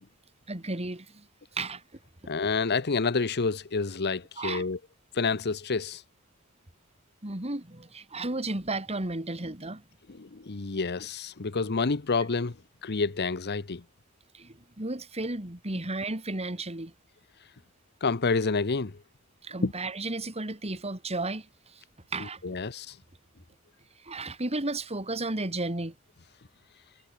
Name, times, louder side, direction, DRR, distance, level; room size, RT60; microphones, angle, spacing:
voice 1, 0.5-1.3 1.5-1.8 4.4-4.7 7.2-9.8 14.3-16.9 19.4-21.8 22.1-22.6 24.0-25.9, right 2 dB, 30° right, 3.0 m, -33 dB
voice 2, 2.3-4.8 5.1-6.0 10.2-12.5 12.8-13.8 18.0-19.0 19.6-19.7 22.4-23.0, left 4 dB, 50° left, 0.9 m, -28 dB
head